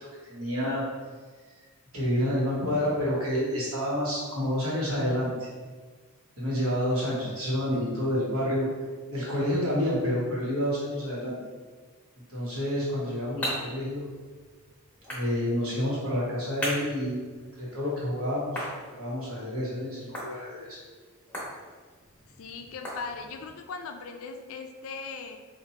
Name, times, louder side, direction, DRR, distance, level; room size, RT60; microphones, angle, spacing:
voice 1, 0.2-0.9 1.9-5.5 6.4-8.7 9.1-11.4 12.3-14.1 15.1-17.2 17.6-20.8, equal, 80° right, -6 dB, 1.3 m, -29 dB
sound 1, 12.7-23.6, equal, 5° left, 0.9 m, -40 dB
voice 2, 13.0-13.8 22.4-25.4, left 4 dB, 70° left, 6 dB, 0.4 m, -40 dB
4.2 x 2.6 x 2.8 m, 1.5 s
head